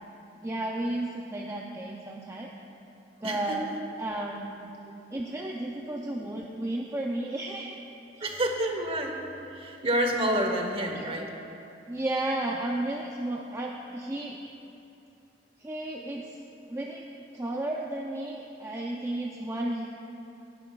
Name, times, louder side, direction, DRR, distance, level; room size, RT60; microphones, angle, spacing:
voice 1, 0.4-2.5 3.2-3.7 4.0-4.7 5.1-7.8 8.2-8.3 10.9-11.0 11.9-14.4 15.6-16.4 16.7-17.1 17.3-19.9, right 1 dB, 15° right, -1 dB, 0.5 m, -33 dB
voice 2, 3.2-3.6 5.9-6.2 8.2-9.2 9.5-11.3, right 1 dB, 35° right, 3 dB, 1.1 m, -29 dB
18.0 x 10.5 x 2.4 m, 2.8 s
head